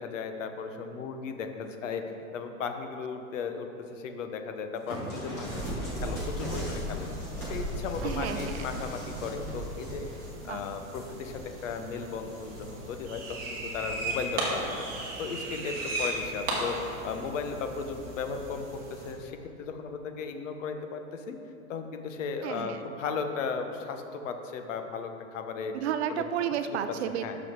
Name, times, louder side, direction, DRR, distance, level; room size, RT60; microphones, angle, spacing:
voice 1, 0.0-10.1 10.4-14.9 15.2-21.4 21.7-25.7 26.1-26.2 26.6-26.8 27.2-27.4, left 5 dB, 60° left, 6 dB, 0.9 m, -36 dB
sound 1, 4.9-11.9 12.3-13.0 13.8-14.1, equal, 10° left, 0.4 m, -37 dB
sound 2, 5.9-19.1, right 2 dB, 20° right, 1.1 m, -38 dB
voice 2, 8.0-8.8 10.4-10.6 22.4-22.8 25.7-27.2, right 9 dB, 50° right, 9 dB, 0.5 m, -32 dB
6.3 x 6.1 x 6.0 m, 2.9 s
supercardioid pair, 165°, 42 cm